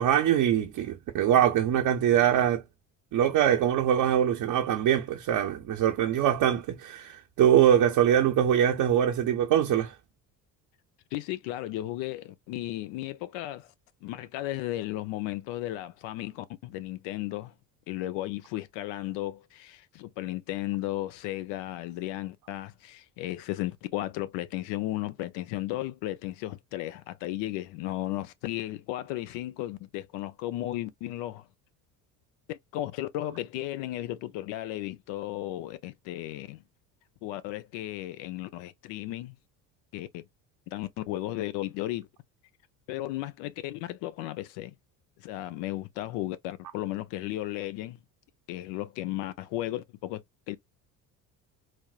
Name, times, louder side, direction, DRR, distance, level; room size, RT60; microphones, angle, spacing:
voice 1, 0.0-2.6 3.1-9.9, right 10 dB, 45° right, 0.6 m, -23 dB
voice 2, 11.1-13.7 14.0-17.5 17.9-31.5 32.5-36.6 37.2-39.4 39.9-40.2 40.7-42.1 42.9-44.7 45.2-48.0 48.5-50.6, left 15 dB, 65° left, 0.6 m, -35 dB
4.2 x 2.0 x 2.3 m
hypercardioid pair, 65°, 47 cm